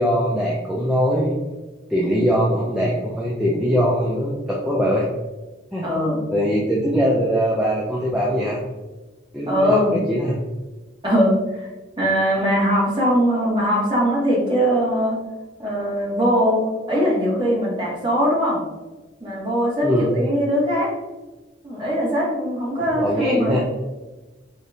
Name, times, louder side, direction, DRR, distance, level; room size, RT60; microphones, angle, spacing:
voice 1, 0.0-1.4 1.9-5.1 5.7-5.9 6.3-8.6 9.3-10.4 19.8-20.1 22.9-23.6, equal, 5° right, -5 dB, 0.4 m, -21 dB
voice 2, 5.8-6.2 9.5-10.0 11.0-11.7 12.0-15.2 15.6-18.6 19.2-20.9 21.6-23.5, equal, 25° right, -5 dB, 1.1 m, -21 dB
5.0 x 2.3 x 2.6 m, 1.2 s
head